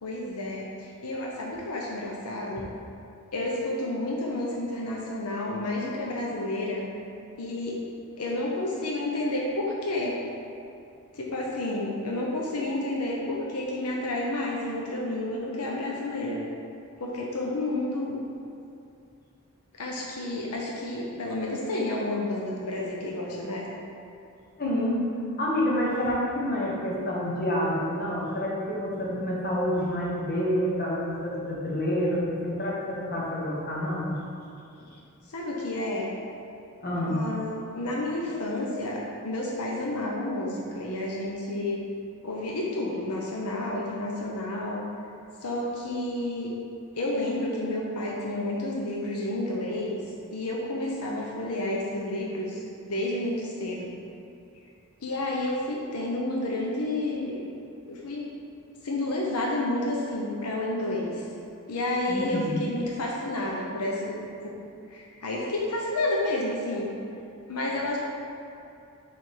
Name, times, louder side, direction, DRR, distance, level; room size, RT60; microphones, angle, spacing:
voice 1, 0.0-2.7 3.3-6.8 7.4-7.8 8.2-10.1 11.1-16.4 17.0-18.1 19.8-23.7 35.3-36.1 37.0-41.8 42.2-44.8 45.4-46.5 46.9-50.0 50.3-53.9 55.0-57.4 57.9-58.3 58.8-61.2 61.7-64.6 64.9-66.9 67.5-68.0, left 1 dB, 85° left, -3 dB, 0.8 m, -30 dB
voice 2, 24.6-25.1 25.4-34.2 36.8-37.3 62.1-62.6, equal, 45° left, -5 dB, 1.1 m, -28 dB
6.1 x 3.5 x 4.6 m, 2.6 s
head